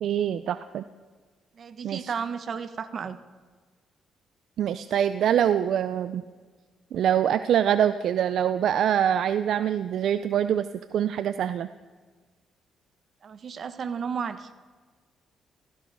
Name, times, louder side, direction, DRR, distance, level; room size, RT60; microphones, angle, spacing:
voice 1, 0.0-0.8 1.8-2.1 4.6-6.2 6.9-10.7 10.9-11.7, right 9 dB, 70° right, 12 dB, 0.5 m, -24 dB
voice 2, 1.6-3.2 13.2-14.5, right 6 dB, 50° right, 11 dB, 1.1 m, -33 dB
16.0 x 15.5 x 5.5 m, 1.4 s
cardioid pair, 90°, 0 cm